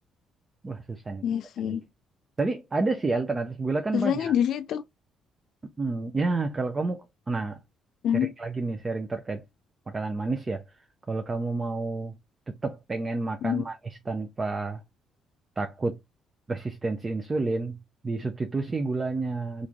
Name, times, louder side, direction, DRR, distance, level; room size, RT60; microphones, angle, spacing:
voice 1, 0.6-1.2 2.4-4.3 5.8-7.6 8.1-9.4 9.9-10.6 11.1-12.1 12.5-14.8 15.6-16.0 16.5-17.8 18.0-19.7, right 3 dB, 20° right, 0.4 m, -29 dB
voice 2, 1.2-1.8 3.9-4.8 8.0-8.3 13.4-13.6, left 9 dB, 65° left, 0.3 m, -26 dB
3.1 x 2.5 x 3.5 m
cardioid pair, 135°, 0 cm